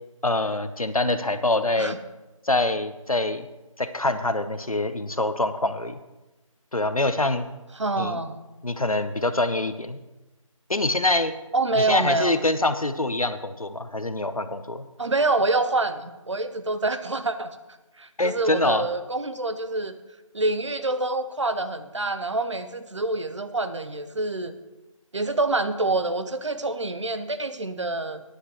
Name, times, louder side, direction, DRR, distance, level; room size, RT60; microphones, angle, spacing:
voice 1, 0.2-2.0 2.4-3.5 3.8-6.0 6.7-7.5 8.0-8.2 8.6-10.0 10.7-11.3 11.7-14.9 18.2-18.9, left 2 dB, 90° left, 11 dB, 0.9 m, -25 dB
voice 2, 7.8-8.4 11.5-12.3 15.0-17.6 18.0-19.9 20.3-24.5 25.1-28.3, right 2 dB, 55° right, 10 dB, 0.8 m, -26 dB
15.0 x 9.8 x 3.1 m, 1.1 s
figure-of-eight pair, 160°, 18 cm